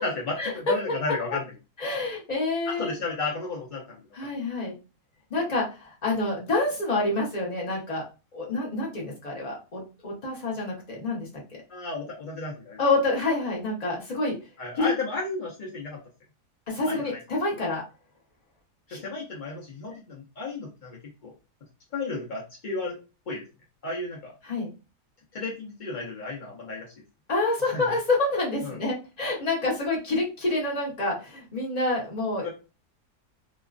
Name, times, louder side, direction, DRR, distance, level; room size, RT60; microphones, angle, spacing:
voice 1, 0.0-1.5 2.7-4.0 11.7-12.8 14.6-16.0 16.9-17.2 18.9-21.3 21.9-23.0 23.3-23.4 23.8-24.4 25.3-26.9 27.6-27.8 28.6-28.8 32.4-32.5, left 3 dB, 60° left, -3 dB, 0.5 m, -33 dB
voice 2, 1.8-2.9 4.1-4.7 5.3-8.0 8.3-11.6 12.8-14.4 14.8-14.9 16.7-17.8 18.9-19.0 24.4-24.7 27.3-32.4, left 2 dB, 30° left, -3 dB, 0.8 m, -27 dB
3.0 x 2.3 x 2.4 m, 0.30 s
omnidirectional pair, 1.7 m